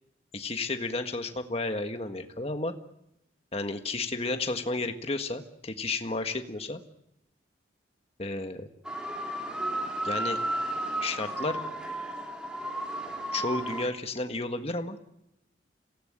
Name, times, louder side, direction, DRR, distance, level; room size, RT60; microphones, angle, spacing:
voice 1, 0.3-2.7 3.5-6.8 8.2-8.7 10.0-10.4 11.0-11.6 13.3-15.0, left 2 dB, 30° left, 7 dB, 1.6 m, -32 dB
sound 1, 8.9-13.9, right 1 dB, 5° right, 3.0 m, -33 dB
26.5 x 18.0 x 9.0 m, 0.80 s
head